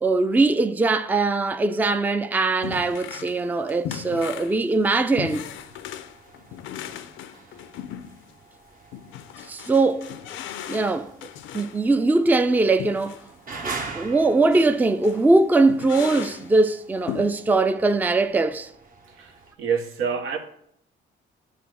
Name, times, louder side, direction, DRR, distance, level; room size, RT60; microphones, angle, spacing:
voice 1, 0.0-5.5 9.5-10.1 10.7-11.1 11.5-13.2 13.6-18.7, right 3 dB, 10° right, 0.4 m, -21 dB
sound 1, 2.6-3.4 3.7-8.4 8.9-11.8 12.8-13.3 13.6-13.7 14.5-14.8 15.0-15.2 15.7-16.5 17.1-17.3, left 10 dB, 85° left, 0.5 m, -37 dB
sound 2, 5.5-19.5, right 4 dB, 45° right, 1.0 m, -43 dB
voice 2, 19.1-20.4, right 6 dB, 85° right, 0.9 m, -27 dB
8.3 x 3.4 x 6.1 m
cardioid pair, 90°, 20 cm